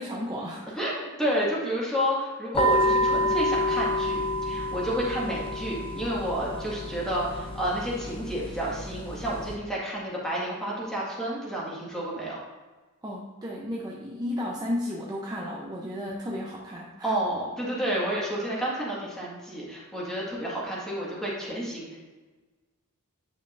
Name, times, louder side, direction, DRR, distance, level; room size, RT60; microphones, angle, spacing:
voice 1, 0.0-0.8 13.0-17.1, left 1 dB, 20° right, -3 dB, 0.7 m, -33 dB
voice 2, 0.8-12.4 17.0-22.0, equal, 5° left, -6 dB, 1.8 m, -30 dB
sound 1, 2.5-9.5, equal, 25° left, 0.7 m, -28 dB
9.1 x 5.8 x 2.6 m, 1.3 s
head